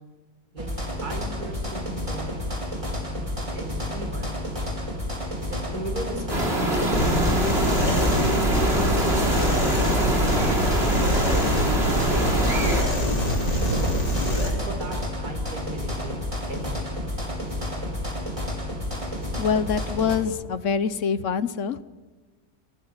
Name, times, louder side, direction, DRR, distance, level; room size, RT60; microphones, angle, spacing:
sound 1, 0.6-20.2, left 1 dB, 15° right, 4.2 m, -30 dB
voice 1, 1.0-2.3 3.5-4.3 5.5-8.3 8.6-9.9 10.5-14.0 14.4-16.1 16.5-17.0, right 1 dB, 60° right, 4 dB, 4.9 m, -38 dB
sound 2, 6.3-12.8, right 1 dB, 35° right, 4.1 m, -24 dB
sound 3, 6.9-14.5, equal, 75° left, 5.4 m, -25 dB
voice 2, 19.4-21.8, left 6 dB, 55° left, 14 dB, 1.1 m, -25 dB
28.0 x 14.5 x 9.7 m, 1.3 s
omnidirectional pair, 1.9 m